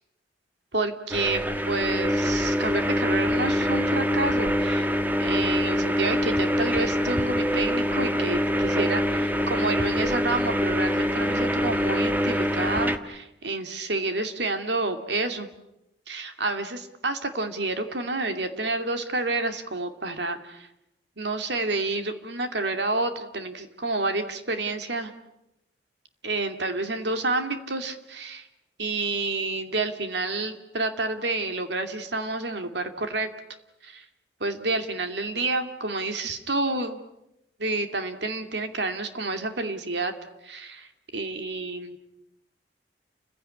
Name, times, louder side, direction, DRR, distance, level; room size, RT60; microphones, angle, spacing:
voice 1, 0.7-4.9 5.2-15.5 16.1-20.7 21.2-25.1 26.2-28.5 28.8-33.3 33.8-34.0 34.4-37.0 37.6-40.1 40.4-42.0, right 2 dB, 75° right, 7 dB, 2.4 m, -29 dB
sound 1, 1.1-13.0, equal, 10° right, 1.4 m, -25 dB
29.5 x 16.0 x 9.9 m, 0.89 s
head